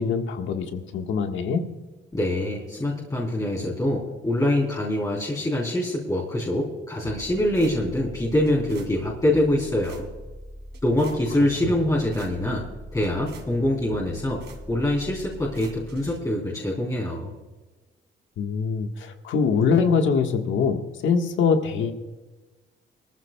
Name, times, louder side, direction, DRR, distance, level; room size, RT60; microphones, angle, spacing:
voice 1, 0.0-1.7 11.6-11.7 18.4-21.9, left 5 dB, 75° left, 5 dB, 1.4 m, -23 dB
voice 2, 2.1-10.1 10.8-12.6 12.9-14.4 14.7-17.3, left 1 dB, 15° left, -4 dB, 3.6 m, -24 dB
sound 1, 7.0-16.2, right 1 dB, 65° right, 2.9 m, -42 dB
20.0 x 14.0 x 2.3 m, 1.2 s
cardioid pair, 90°, 20 cm